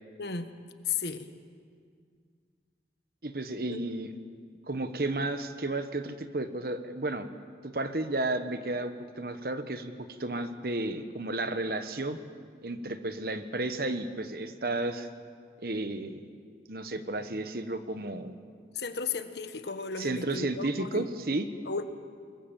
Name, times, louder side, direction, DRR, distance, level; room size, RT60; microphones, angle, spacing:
voice 1, 0.2-0.5 0.9-1.3 3.7-3.8 18.7-21.1 21.7-21.8, left 5 dB, 70° left, 9 dB, 1.4 m, -34 dB
voice 2, 3.2-4.1 4.7-7.3 7.6-9.9 10.2-12.2 12.6-15.1 15.6-16.2 16.7-18.3 20.0-21.5, right 2 dB, 55° right, 9 dB, 1.3 m, -32 dB
23.5 x 21.5 x 7.5 m, 2.1 s
head